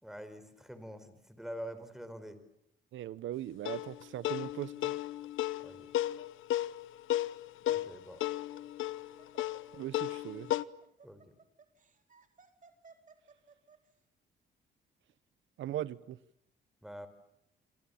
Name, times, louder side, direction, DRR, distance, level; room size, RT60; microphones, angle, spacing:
voice 1, 0.0-2.4 5.6-5.9 7.7-8.2 11.0-11.2 16.8-17.1, equal, ahead, 4.9 m, -45 dB
voice 2, 2.9-5.0 9.8-10.5 15.6-16.2, right 12 dB, 80° right, 1.1 m, -39 dB
sound 1, 3.7-10.6, left 14 dB, 80° left, 0.9 m, -34 dB
Laughter, 8.5-13.9, right 5 dB, 40° right, 4.3 m, -61 dB
28.0 x 25.5 x 7.3 m
cardioid pair, 90°, 20 cm